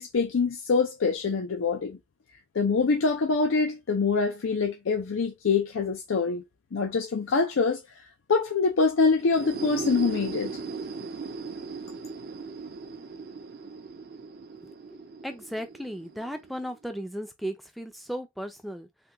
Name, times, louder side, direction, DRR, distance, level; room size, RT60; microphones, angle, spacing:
voice 1, 0.0-2.0 2.5-6.4 6.7-7.8 8.3-10.5, left 4 dB, 70° left, 0.5 m, -25 dB
sound 1, 9.2-16.8, right 4 dB, 50° right, 0.6 m, -38 dB
voice 2, 14.6-18.9, equal, ahead, 0.4 m, -36 dB
3.5 x 2.3 x 2.8 m
head